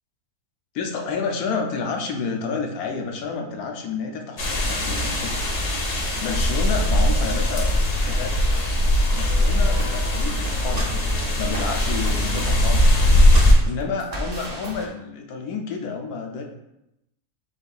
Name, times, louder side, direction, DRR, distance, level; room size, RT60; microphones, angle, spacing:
voice 1, 0.7-5.4 6.2-7.7 8.0-8.4 9.1-10.9 11.4-12.8 13.7-16.4, left 5 dB, 75° left, 2 dB, 1.1 m, -30 dB
sound 1, 4.4-13.5, left 1 dB, 50° left, 1.1 m, -20 dB
sound 2, 9.6-14.9, right 1 dB, 55° right, 0.4 m, -34 dB
5.3 x 4.1 x 2.3 m, 0.86 s
omnidirectional pair, 1.6 m